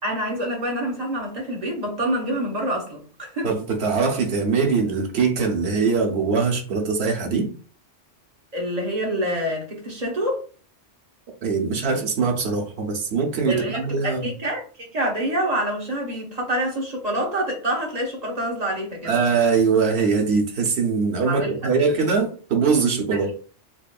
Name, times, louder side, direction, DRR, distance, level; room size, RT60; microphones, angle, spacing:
voice 1, 0.0-3.5 8.5-10.4 13.5-19.2 21.3-21.5 23.1-23.2, right 1 dB, 35° right, 1.1 m, -26 dB
voice 2, 3.4-7.5 11.4-14.3 19.0-23.3, right 5 dB, 65° right, 1.0 m, -22 dB
4.4 x 2.6 x 2.3 m
omnidirectional pair, 1.2 m